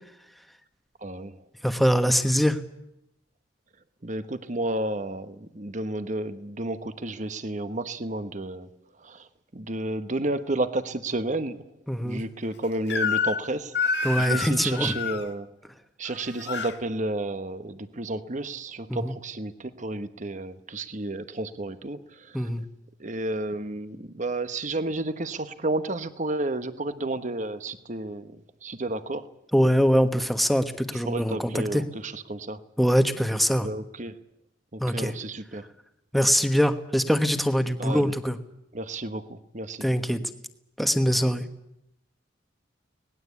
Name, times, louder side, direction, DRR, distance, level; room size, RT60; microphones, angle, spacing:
voice 1, 1.0-1.4 4.0-8.7 9.0-11.6 12.0-13.7 14.2-15.5 16.0-22.5 23.0-29.3 30.9-32.6 33.6-34.2 34.7-35.6 37.8-38.1 38.7-39.9, right 2 dB, 40° right, 11 dB, 1.2 m, -31 dB
voice 2, 1.6-2.6 11.9-12.2 14.0-15.0 18.9-19.1 22.3-22.6 29.5-31.8 32.8-33.7 34.8-35.1 36.1-38.4 39.8-40.2 40.8-41.4, equal, ahead, 8 dB, 1.2 m, -23 dB
Crying sobbing / Screech, 12.9-13.5 13.7-15.2 16.1-16.7, left 5 dB, 60° left, 1.7 m, -28 dB
25.0 x 19.0 x 8.4 m, 0.83 s
head